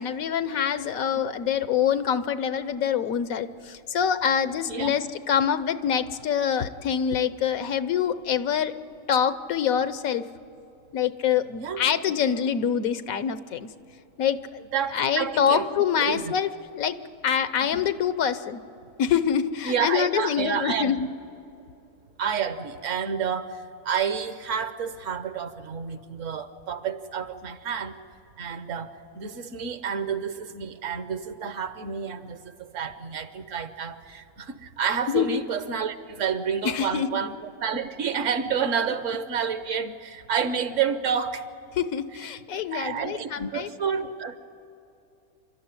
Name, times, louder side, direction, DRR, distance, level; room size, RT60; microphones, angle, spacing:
voice 1, 0.0-8.7 9.1-10.2 10.9-13.7 14.2-14.6 14.9-17.0 17.2-18.6 19.0-21.1 35.1-35.3 36.6-37.1 41.8-43.7, left 8 dB, 85° left, 13 dB, 1.3 m, -25 dB
voice 2, 4.7-5.0 11.6-11.8 14.7-15.7 16.0-16.3 17.7-17.9 18.8-18.9 19.6-20.9 22.2-28.0 28.4-37.4 37.6-41.5 42.7-44.4, right 7 dB, 65° right, 11 dB, 1.3 m, -29 dB
28.5 x 13.0 x 9.6 m, 2.8 s
omnidirectional pair, 1.4 m